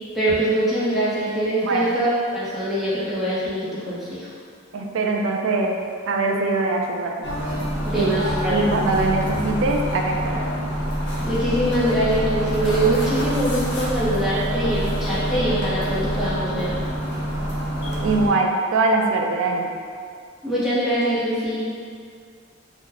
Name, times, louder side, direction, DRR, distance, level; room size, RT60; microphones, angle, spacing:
voice 1, 0.1-4.3 7.8-8.7 11.2-16.9 20.4-21.6, right 1 dB, ahead, -10 dB, 0.7 m, -23 dB
voice 2, 1.6-1.9 4.7-5.8 6.1-7.3 7.9-8.0 8.5-10.4 18.0-19.7, right 3 dB, 70° right, 2 dB, 0.4 m, -22 dB
sound 1, 7.2-18.3, equal, 60° left, 0.6 m, -26 dB
2.9 x 2.1 x 3.8 m, 2.2 s
head